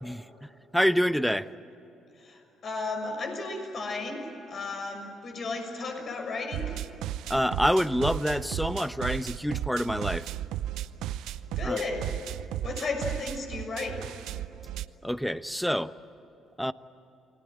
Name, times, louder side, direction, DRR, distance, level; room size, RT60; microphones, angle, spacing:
voice 1, 0.0-1.5 7.3-10.3 11.6-11.8 15.0-16.0 16.6-16.7, equal, ahead, 14 dB, 1.0 m, -27 dB
voice 2, 2.1-6.7 11.2-12.2 12.6-14.0, left 3 dB, 55° left, 3 dB, 6.6 m, -34 dB
sound 1, 6.5-14.9, right 12 dB, 75° right, 0.6 m, -35 dB
29.0 x 20.5 x 8.9 m, 3.0 s
hypercardioid pair, 55°, 0 cm